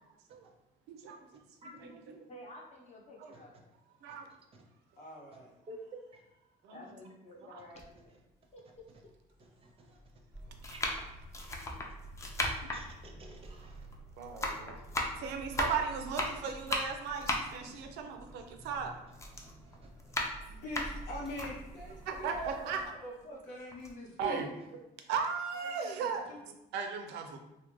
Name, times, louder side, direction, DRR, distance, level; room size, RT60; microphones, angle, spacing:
voice 1, 0.9-1.2 1.8-2.2 3.2-3.3 4.0-4.3 6.6-6.8 7.5-7.6 14.2-14.8 15.2-18.9 22.1-22.8 24.2-24.5 25.1-26.2 26.7-27.4, right 6 dB, 90° right, 5 dB, 0.4 m, -36 dB
voice 2, 2.3-3.7 6.7-8.1 8.5-8.6, left 1 dB, 40° left, -2 dB, 0.7 m, -51 dB
voice 3, 5.0-5.5 20.5-24.4 25.6-26.4, equal, 75° left, -3 dB, 0.9 m, -44 dB
sound 1, 7.8-7.9 8.8-8.9 9.8-10.1 10.6-14.0 14.2-18.8 19.1-21.5 22.0-22.1 22.4-23.4 23.7-23.9, left 1 dB, 15° left, 0.4 m, -36 dB
voice 4, 9.6-10.0 10.7-10.8 12.7-13.8 19.4-19.5, left 1 dB, 35° right, 1 dB, 0.5 m, -51 dB
sound 2, 10.3-22.9, right 1 dB, ahead, 0.8 m, -50 dB
2.4 x 2.1 x 3.0 m, 0.92 s
cardioid pair, 110°, 17 cm